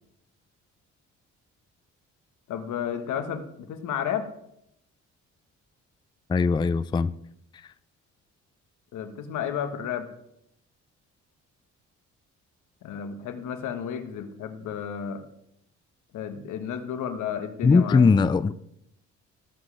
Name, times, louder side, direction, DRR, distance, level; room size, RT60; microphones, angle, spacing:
voice 1, 2.5-4.3 8.9-10.1 12.8-15.2 16.1-18.1, left 8 dB, 80° left, 8 dB, 1.4 m, -32 dB
voice 2, 6.3-7.1 17.6-18.5, left 4 dB, 15° left, 16 dB, 0.3 m, -20 dB
18.0 x 7.5 x 3.4 m, 0.76 s
cardioid pair, 90°, 30 cm